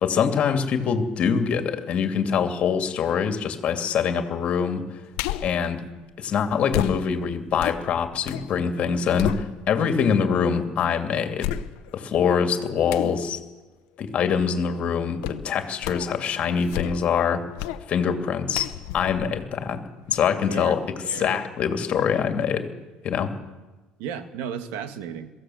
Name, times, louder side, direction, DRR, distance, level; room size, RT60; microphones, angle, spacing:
voice 1, 0.0-5.0 5.4-5.8 6.2-11.5 11.9-13.4 14.0-17.4 17.9-18.7 18.9-19.8 20.1-22.7 23.0-23.3, left 7 dB, 45° left, 6 dB, 2.5 m, -24 dB
sound 1, 5.1-5.6 6.7-8.5 8.8-9.9 10.5-10.6 11.4-12.1 12.9-13.2 15.2-15.5 15.8-16.2 16.6-17.2 17.6-17.8 18.5-20.2 20.6-20.7, left 13 dB, 85° left, 0.9 m, -32 dB
voice 2, 20.2-20.8 21.0-21.4 24.0-25.3, right 8 dB, 80° right, 10 dB, 1.7 m, -34 dB
22.5 x 15.0 x 7.9 m, 1.2 s
cardioid pair, 120°, 3 cm